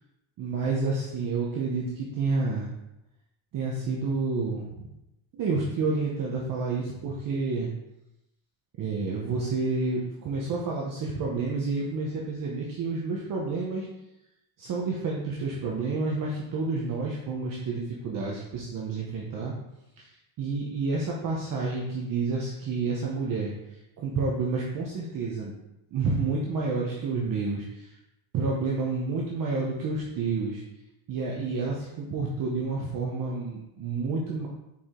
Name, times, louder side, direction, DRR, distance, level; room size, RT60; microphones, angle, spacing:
voice 1, 0.4-2.7 3.5-4.9 5.3-7.7 8.8-13.9 14.6-19.5 20.0-20.1 20.4-23.5 24.0-25.5 25.9-27.9 28.3-30.6 31.1-34.5, right 3 dB, 40° right, -2 dB, 1.0 m, -29 dB
7.2 x 5.0 x 3.7 m, 0.88 s
cardioid pair, 175°, 48 cm